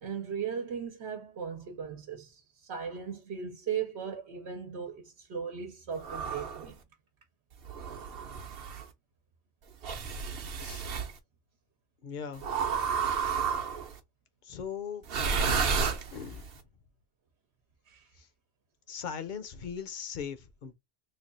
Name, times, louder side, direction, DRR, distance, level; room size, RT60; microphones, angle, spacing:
voice 1, 0.0-6.8 17.9-18.1, right 7 dB, 85° right, 1.1 m, -37 dB
sound 1, 6.0-6.7 7.6-8.8 9.8-11.1 12.4-13.9 15.0-16.5, right 5 dB, 65° right, 0.9 m, -31 dB
voice 2, 12.0-12.5 14.4-15.0 16.1-16.5 18.2-18.3 18.9-20.7, left 7 dB, 55° left, 0.7 m, -39 dB
3.3 x 2.3 x 3.8 m
omnidirectional pair, 1.1 m